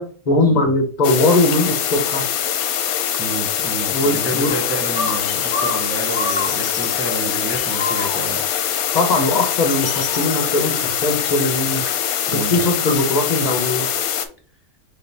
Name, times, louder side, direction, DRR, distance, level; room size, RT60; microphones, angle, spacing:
voice 1, 0.0-2.3 3.9-4.5 8.9-11.8 12.3-13.9, left 2 dB, 30° left, 1.0 m, -20 dB
sound 1, 1.0-14.3, left 9 dB, 75° left, 1.1 m, -23 dB
voice 2, 3.2-8.5 12.3-12.7, right 2 dB, 15° right, 0.4 m, -29 dB
sound 2, 4.5-11.7, left 4 dB, 60° left, 0.9 m, -30 dB
4.0 x 3.3 x 4.0 m
omnidirectional pair, 1.6 m